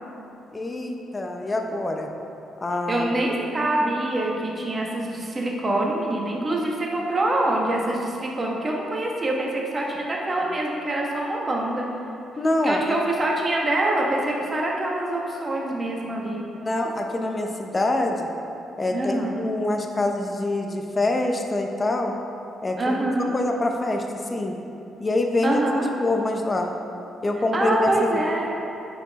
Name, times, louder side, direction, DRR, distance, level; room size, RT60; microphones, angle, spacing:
voice 1, 0.5-2.1 2.6-3.1 12.4-12.9 16.5-18.3 18.8-22.1 22.6-23.1 23.3-24.6 25.0-25.6 26.0-26.7 27.2-28.2, left 2 dB, 25° left, 3 dB, 0.8 m, -25 dB
voice 2, 2.9-11.9 12.6-16.4 18.9-19.3 22.8-23.3 25.4-25.9 27.5-28.5, right 1 dB, 30° right, -2 dB, 1.3 m, -25 dB
9.9 x 4.5 x 4.1 m, 2.8 s
cardioid pair, 90°, 0 cm